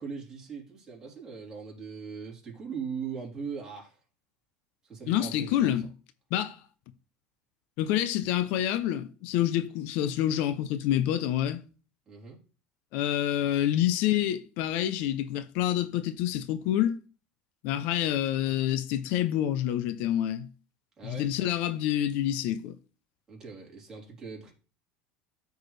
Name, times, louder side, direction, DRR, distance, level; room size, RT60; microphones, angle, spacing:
voice 1, 0.0-4.0 4.8-5.7 12.1-12.4 21.0-21.3 23.3-24.5, right 6 dB, 20° right, 3.7 m, -40 dB
voice 2, 5.1-5.9 6.3-6.6 7.8-11.6 12.9-17.0 17.6-20.5 21.0-22.8, left 12 dB, 65° left, 0.6 m, -27 dB
13.5 x 4.7 x 3.3 m
supercardioid pair, 120°, 3 cm